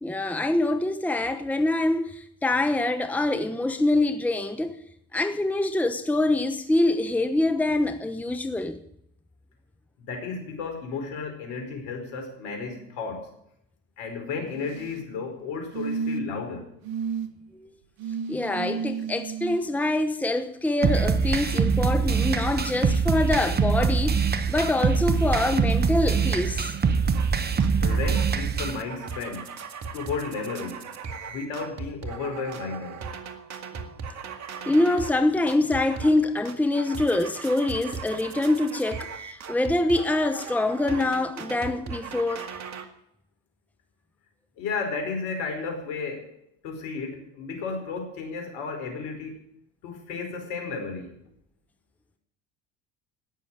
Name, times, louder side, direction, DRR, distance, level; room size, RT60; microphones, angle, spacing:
voice 1, 0.0-4.8 5.1-8.8 17.6-17.7 18.3-26.7 34.7-42.5, left 2 dB, 5° left, 1.1 m, -25 dB
voice 2, 10.0-13.3 14.0-16.7 27.8-29.5 29.9-30.8 31.3-33.0 44.6-46.4 46.6-49.5 49.8-51.2, left 4 dB, 65° left, 4.9 m, -33 dB
sound 1, 14.5-15.0 15.7-16.4 16.8-17.3 18.0-19.6 20.8-20.9, right 5 dB, 75° right, 1.4 m, -32 dB
sound 2, 20.8-28.8, right 5 dB, 25° right, 1.2 m, -23 dB
sound 3, 27.1-27.3 27.6-28.3 28.6-35.2 35.5-36.2 36.5-42.9, right 5 dB, 45° right, 2.1 m, -38 dB
17.5 x 6.9 x 9.2 m
hypercardioid pair, 80°, 39 cm